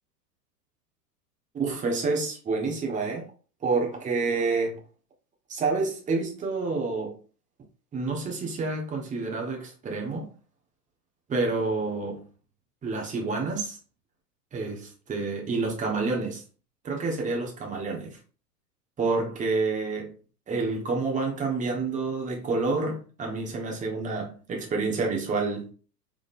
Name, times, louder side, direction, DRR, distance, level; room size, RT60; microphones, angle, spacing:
voice 1, 1.5-3.3 3.6-4.8 5.5-7.2 7.9-10.3 11.3-12.2 12.8-13.8 14.5-16.4 16.8-18.2 19.0-20.2 20.5-25.7, right 3 dB, 15° right, 1.0 m, -28 dB
3.8 x 3.6 x 2.4 m
hypercardioid pair, 105°, 49 cm